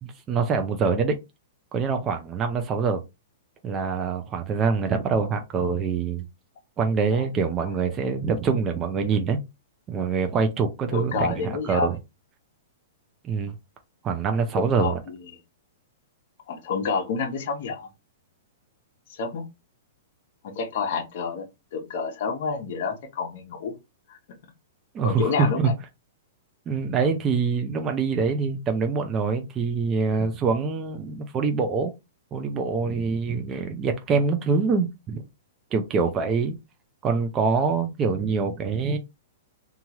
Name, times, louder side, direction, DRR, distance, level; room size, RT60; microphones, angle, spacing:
voice 1, 0.3-1.2 1.7-3.0 3.6-6.2 6.8-9.4 9.9-12.0 13.2-13.5 14.0-15.0 24.9-25.7 26.7-31.9 32.3-35.2 35.7-36.6 37.0-39.0, right 5 dB, 20° right, 0.4 m, -25 dB
voice 2, 10.9-11.9 14.5-15.2 16.5-17.9 19.1-19.4 20.4-21.5 21.7-23.7 24.1-24.2 25.0-25.7, left 5 dB, 50° left, 0.8 m, -29 dB
3.0 x 2.3 x 2.8 m
hypercardioid pair, 160°, 0 cm